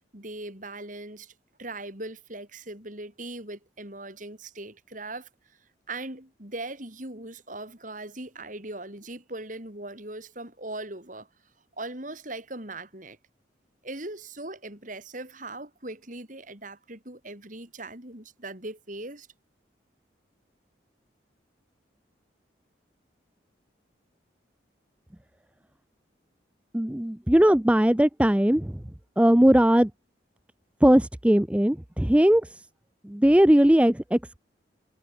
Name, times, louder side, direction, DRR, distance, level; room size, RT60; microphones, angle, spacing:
voice 1, 0.1-1.3 1.6-5.3 5.9-11.3 11.8-13.2 13.8-19.3, right 2 dB, 40° right, 4.8 m, -39 dB
voice 2, 26.7-28.8 29.2-29.9 30.8-32.4 33.0-34.4, equal, 5° right, 0.5 m, -19 dB
head